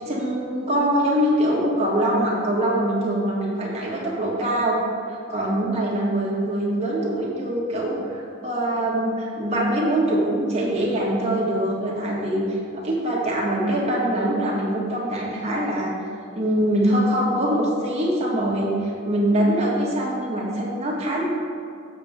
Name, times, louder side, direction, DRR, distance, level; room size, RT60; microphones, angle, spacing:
voice 1, 0.0-4.8 5.1-12.6 12.8-15.9 16.3-21.3, right 1 dB, 30° right, -5 dB, 1.6 m, -23 dB
7.3 x 6.9 x 3.6 m, 2.5 s
head